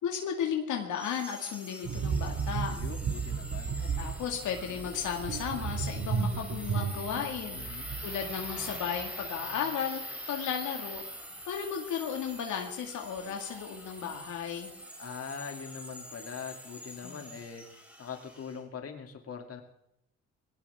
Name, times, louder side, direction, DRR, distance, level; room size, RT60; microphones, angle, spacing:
voice 1, 0.0-2.8 4.0-11.0 11.5-14.7 17.0-17.2, left 8 dB, 75° left, 2 dB, 2.2 m, -34 dB
sound 1, 0.9-18.6, equal, 5° right, 3.7 m, -44 dB
sound 2, 1.8-9.3 9.5-9.7, right 6 dB, 60° right, 2.5 m, -34 dB
voice 2, 2.7-3.8 7.5-7.9 15.0-19.6, left 6 dB, 50° left, 3 dB, 2.8 m, -42 dB
21.0 x 18.0 x 3.6 m, 0.78 s
cardioid pair, 90°, 30 cm